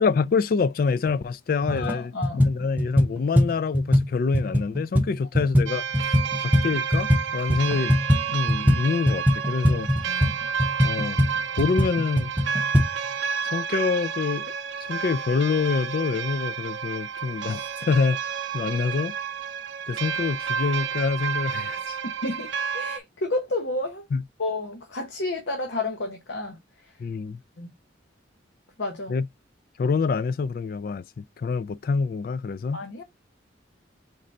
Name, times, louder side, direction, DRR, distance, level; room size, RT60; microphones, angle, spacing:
voice 1, 0.0-8.0 8.3-10.2 10.8-11.2 11.6-12.3 13.4-14.5 14.9-19.1 19.9-22.0 24.1-24.2 27.0-27.4 29.1-29.2 29.8-32.8, left 5 dB, 50° left, 0.3 m, -26 dB
voice 2, 1.7-2.5 10.0-10.4 22.0-22.5 22.7-24.1 24.4-26.6 27.6-27.7 28.8-29.1 32.7-33.0, left 2 dB, 70° left, 0.8 m, -31 dB
sound 1, 1.7-2.0 2.2-7.2 7.5-12.9, left 1 dB, 10° right, 0.6 m, -22 dB
sound 2, 5.7-23.0, right 7 dB, 75° right, 0.6 m, -30 dB
3.9 x 3.2 x 3.9 m
head